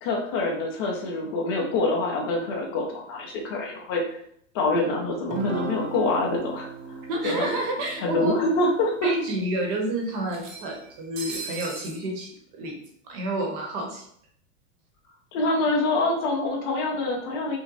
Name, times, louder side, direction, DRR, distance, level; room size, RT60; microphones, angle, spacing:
voice 1, 0.0-4.0 4.5-7.0 7.2-7.5 8.0-9.1 15.3-17.6, left 2 dB, 20° left, 0 dB, 0.4 m, -25 dB
Guitar, 5.3-9.9, right 3 dB, 65° right, 0.9 m, -37 dB
sound 1, 6.9-7.0 7.3-7.4 8.4-8.5 8.9-9.0 10.3-12.0, right 4 dB, 80° right, 1.2 m, -38 dB
voice 2, 7.1-8.5 9.0-12.8 13.0-14.0, right 1 dB, 30° right, 1 dB, 0.9 m, -29 dB
5.8 x 2.1 x 3.9 m, 0.66 s
supercardioid pair, 175°, 39 cm